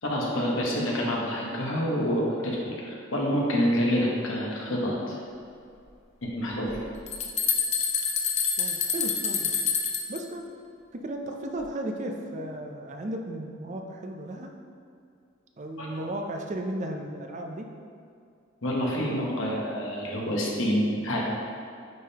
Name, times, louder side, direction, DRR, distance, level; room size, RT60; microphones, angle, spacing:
voice 1, 0.0-5.2 6.2-6.7 15.8-15.9 18.6-21.2, equal, 85° left, -3 dB, 1.1 m, -27 dB
sound 1, 6.7-10.2, left 6 dB, 35° left, 0.5 m, -27 dB
voice 2, 8.6-9.5 10.1-10.4 10.9-14.5 15.6-17.7, right 1 dB, 40° right, 3 dB, 0.5 m, -35 dB
9.2 x 3.7 x 2.9 m, 2.4 s
head